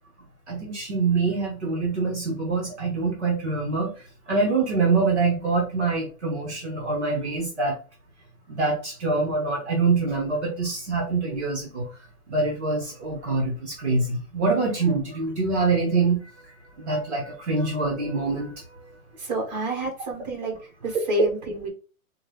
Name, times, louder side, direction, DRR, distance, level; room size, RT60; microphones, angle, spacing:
voice 1, 0.5-7.8 8.5-12.0 12.3-18.6, right 3 dB, 45° right, 0 dB, 1.0 m, -25 dB
voice 2, 19.2-21.7, right 1 dB, 30° right, -1 dB, 1.3 m, -29 dB
4.0 x 2.3 x 3.3 m, 0.36 s
hypercardioid pair, 180°, 45 cm